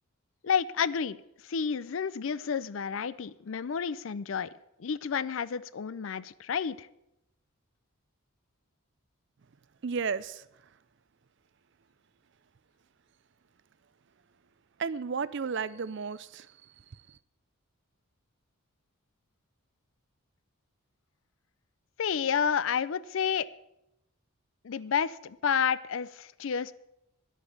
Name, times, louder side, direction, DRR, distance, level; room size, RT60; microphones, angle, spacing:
voice 1, 0.4-1.2 1.4-4.5 4.8-6.9 22.0-23.5 24.6-26.7, left 7 dB, 65° left, 0.4 m, -30 dB
voice 2, 9.8-10.4 14.8-16.5, right 5 dB, 55° right, 0.4 m, -33 dB
11.5 x 8.3 x 7.1 m
head